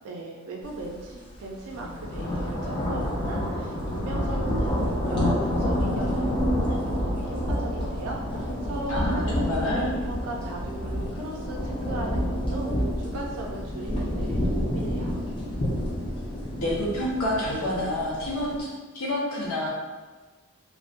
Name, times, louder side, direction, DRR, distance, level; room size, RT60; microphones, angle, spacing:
voice 1, 0.0-15.3, right 2 dB, 85° right, -1 dB, 0.4 m, -37 dB
sound 1, 0.8-1.0 1.3-18.6, equal, 25° left, 0.3 m, -28 dB
voice 2, 8.9-9.9 16.6-18.7 18.9-19.7, left 1 dB, 70° left, -6 dB, 0.7 m, -28 dB
2.5 x 2.0 x 2.4 m, 1.3 s
head